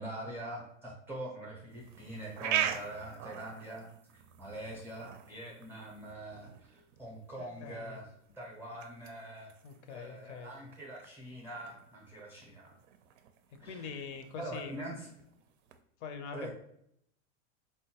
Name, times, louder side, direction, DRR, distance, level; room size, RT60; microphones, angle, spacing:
voice 1, 0.0-3.9 4.1-8.1 8.4-9.5 9.9-12.7 13.6-14.0 14.4-15.1 16.3-16.5, right 1 dB, 5° right, -2 dB, 0.5 m, -44 dB
sound 1, 1.7-15.8, right 9 dB, 85° right, 0.5 m, -42 dB
voice 2, 7.4-8.0 9.6-10.5 13.6-14.7 16.0-16.5, left 6 dB, 70° left, 7 dB, 0.6 m, -44 dB
3.8 x 2.2 x 2.7 m, 0.71 s
supercardioid pair, 155°, 36 cm